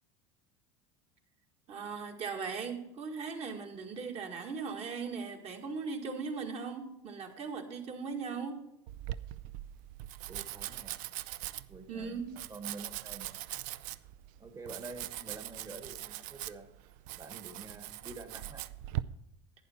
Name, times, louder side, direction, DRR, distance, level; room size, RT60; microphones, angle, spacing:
voice 1, 1.7-8.6 11.9-12.3, right 5 dB, 40° right, 3 dB, 1.9 m, -38 dB
Domestic sounds home sounds, 8.9-19.0, right 15 dB, 60° right, 0.4 m, -41 dB
voice 2, 10.3-10.9 11.7-13.4 14.4-16.7 17.2-18.6, right 3 dB, 25° right, 8 dB, 1.5 m, -47 dB
11.5 x 8.8 x 4.3 m, 0.82 s
supercardioid pair, 95°, 15 cm